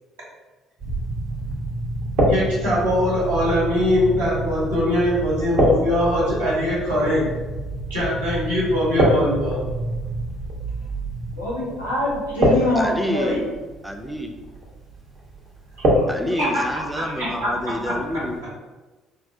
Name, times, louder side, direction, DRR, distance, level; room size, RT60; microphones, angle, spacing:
sound 1, 0.8-18.4, right 1 dB, 50° right, 0.7 m, -26 dB
voice 1, 2.3-7.3 7.9-9.6 15.9-16.8 17.2-17.5 17.8-18.1, left 1 dB, 80° right, -8 dB, 1.0 m, -22 dB
voice 2, 11.3-13.4, left 1 dB, 90° left, -6 dB, 0.8 m, -24 dB
voice 3, 12.8-13.4 13.8-14.3 16.1-18.4, equal, 5° right, 4 dB, 0.4 m, -28 dB
3.4 x 2.0 x 2.5 m, 1.2 s
figure-of-eight pair, 50°, 0 cm